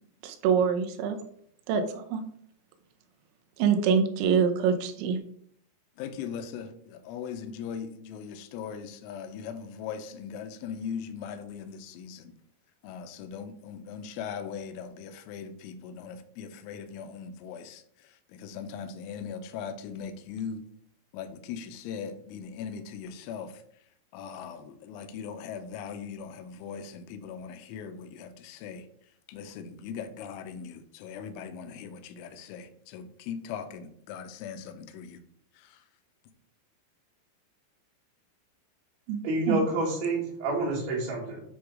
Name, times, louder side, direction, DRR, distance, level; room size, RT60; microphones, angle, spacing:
voice 1, 0.2-1.2 1.7-1.8 2.1-2.2 3.6-5.2 39.1-39.2 39.5-39.6, right 6 dB, 85° right, 6 dB, 3.5 m, -24 dB
voice 2, 6.0-12.3 12.8-20.6 21.1-23.5 24.1-28.9 29.3-35.2 35.6-35.8, left 7 dB, 80° left, 8 dB, 3.0 m, -40 dB
voice 3, 39.2-41.4, right 2 dB, 65° right, -5 dB, 4.6 m, -28 dB
9.5 x 3.5 x 4.8 m, 0.65 s
omnidirectional pair, 6.0 m